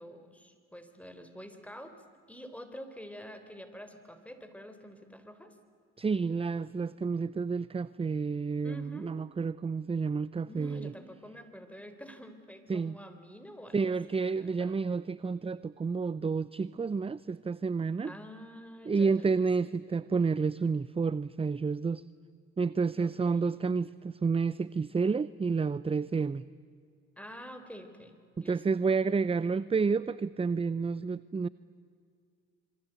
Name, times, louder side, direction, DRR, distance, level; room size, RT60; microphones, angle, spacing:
voice 1, 0.0-5.6 8.6-9.1 10.5-14.7 18.0-19.3 23.0-23.5 27.2-28.6, equal, 5° left, 8 dB, 4.0 m, -48 dB
voice 2, 6.0-10.9 12.7-13.0 13.7-18.1 18.9-22.1 22.6-26.5 28.4-31.5, right 4 dB, 15° right, 19 dB, 0.6 m, -30 dB
26.5 x 24.0 x 9.2 m, 2.2 s
hypercardioid pair, 50°, 33 cm